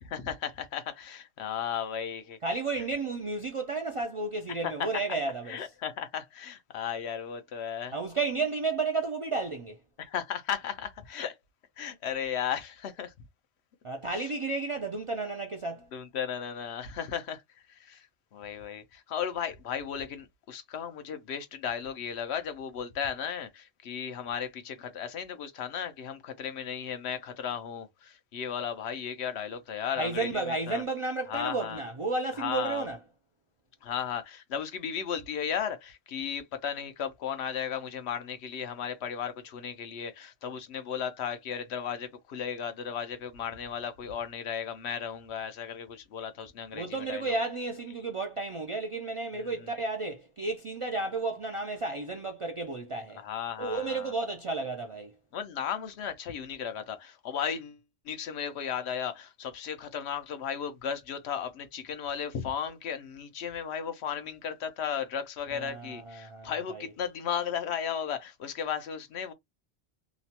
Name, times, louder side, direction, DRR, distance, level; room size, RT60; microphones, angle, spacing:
voice 1, 0.0-2.4 4.6-4.9 5.5-8.0 10.0-11.4 11.8-13.1 14.1-14.2 15.9-17.4 17.7-18.1 18.3-30.8 31.3-31.8 32.3-32.9 33.8-47.3 49.4-49.7 53.1-54.1 55.3-57.8 58.0-69.3, left 8 dB, 80° left, 0.9 m, -35 dB
voice 2, 2.4-5.6 7.9-9.8 13.8-15.9 30.0-33.0 46.7-53.2 53.6-55.1 65.5-66.9, right 3 dB, 60° right, 0.3 m, -32 dB
3.0 x 2.0 x 2.8 m
omnidirectional pair, 1.1 m